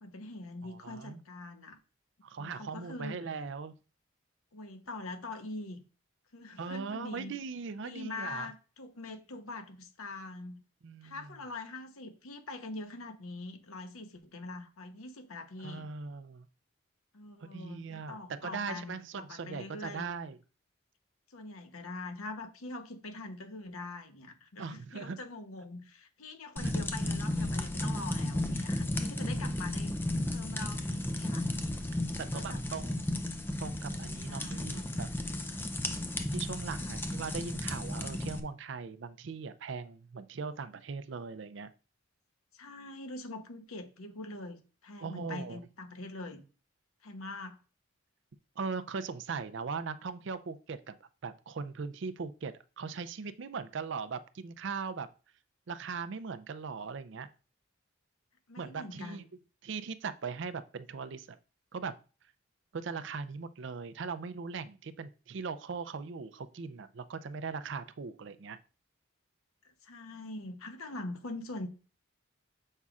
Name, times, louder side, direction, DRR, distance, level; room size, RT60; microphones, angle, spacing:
voice 1, 0.0-1.8 2.4-3.2 4.5-5.8 6.3-7.4 7.8-10.6 11.0-15.9 17.1-20.1 21.3-29.9 30.3-31.5 32.1-32.6 33.8-34.0 34.3-35.0 35.4-35.7 36.8-36.9 42.5-46.4 47.0-47.6 58.5-59.3 69.8-71.7, left 2 dB, 90° left, 0.9 m, -43 dB
voice 2, 0.6-1.2 2.2-3.7 6.6-8.5 10.8-11.3 15.6-16.5 17.4-20.4 24.6-25.2 26.6-26.7 32.2-33.1 33.6-35.1 36.3-41.7 45.0-45.6 48.6-50.9 51.2-55.1 55.7-57.3 58.6-59.3 59.6-61.3 61.7-61.9 62.7-68.6, right 5 dB, 60° right, 0.4 m, -39 dB
sound 1, 26.6-38.4, left 1 dB, 10° left, 0.4 m, -34 dB
7.2 x 5.4 x 2.4 m
head